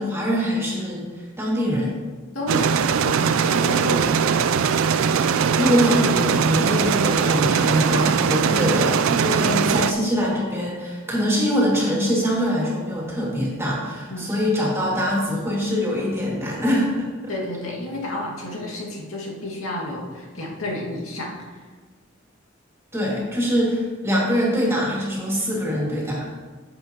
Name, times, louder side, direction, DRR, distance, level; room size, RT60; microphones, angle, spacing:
voice 1, 0.0-1.9 5.6-17.3 22.9-26.3, equal, 15° right, -4 dB, 2.1 m, -23 dB
voice 2, 2.3-2.7 3.0-4.2 14.1-14.3 17.3-21.7, left 1 dB, 90° left, -3 dB, 2.0 m, -31 dB
sound 1, 2.5-9.9, right 6 dB, 80° right, 0.4 m, -20 dB
11.0 x 7.8 x 2.9 m, 1.4 s
head